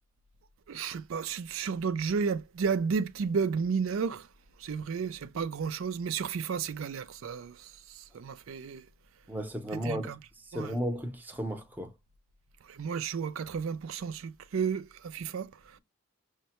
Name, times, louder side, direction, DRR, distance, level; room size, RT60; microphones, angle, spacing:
voice 1, 0.7-4.3 4.6-8.8 9.8-10.2 10.5-10.7 12.7-15.8, right 6 dB, 80° right, 0.4 m, -32 dB
voice 2, 9.3-11.9, equal, 10° right, 0.6 m, -35 dB
6.3 x 2.2 x 2.9 m
head